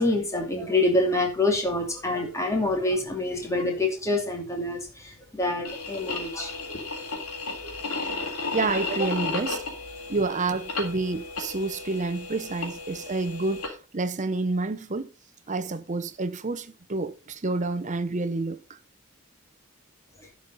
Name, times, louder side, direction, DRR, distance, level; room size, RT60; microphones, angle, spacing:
voice 1, 0.0-6.9 7.6-7.7 8.2-8.3 20.2-20.3, left 2 dB, 15° left, 2.6 m, -26 dB
sound 1, 5.6-13.7, left 3 dB, 85° left, 3.4 m, -34 dB
voice 2, 8.5-9.6 10.1-15.1 15.5-18.6, right 3 dB, 35° right, 0.7 m, -29 dB
11.5 x 5.5 x 5.4 m
head